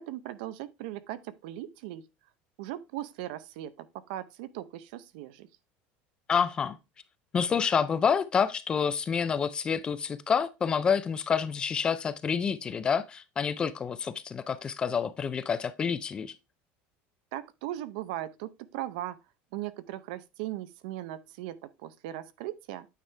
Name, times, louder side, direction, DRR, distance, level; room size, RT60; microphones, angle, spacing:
voice 1, 0.0-2.0 2.6-5.5 17.3-19.2 19.5-22.9, right 14 dB, 75° right, 0.7 m, -38 dB
voice 2, 6.3-6.8 7.3-16.3, left 6 dB, 20° left, 0.4 m, -28 dB
9.0 x 4.9 x 3.3 m
cardioid pair, 170°, 5 cm